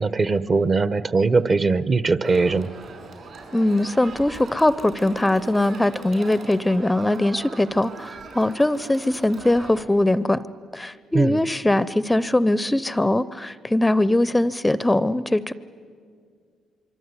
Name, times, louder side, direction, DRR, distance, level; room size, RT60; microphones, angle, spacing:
voice 1, 0.0-2.7 11.1-11.4, right 4 dB, 40° right, 16 dB, 0.9 m, -20 dB
Crowd, 2.2-9.8, right 4 dB, 60° right, 5.6 m, -41 dB
voice 2, 3.5-10.4 10.7-15.5, left 1 dB, 10° left, 17 dB, 0.6 m, -21 dB
24.5 x 24.0 x 9.7 m, 2.1 s
cardioid pair, 90°, 0 cm